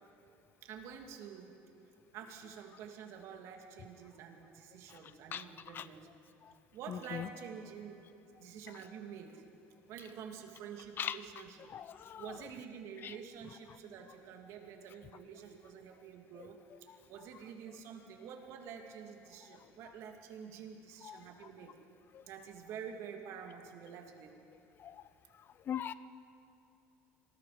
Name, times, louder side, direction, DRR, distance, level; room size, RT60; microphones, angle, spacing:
voice 1, 0.6-1.6 2.1-6.1 6.7-8.0 8.4-9.4 9.9-11.7 12.2-16.6 17.1-21.8 22.3-24.3, right 7 dB, 65° right, 3 dB, 2.6 m, -48 dB
voice 2, 6.9-7.3 11.0-11.2 11.7-12.2 13.0-13.1 21.0-21.2 24.8-25.0 25.7-25.9, left 9 dB, 40° left, 15 dB, 0.7 m, -39 dB
26.5 x 21.0 x 5.1 m, 2.8 s
cardioid pair, 130°, 5 cm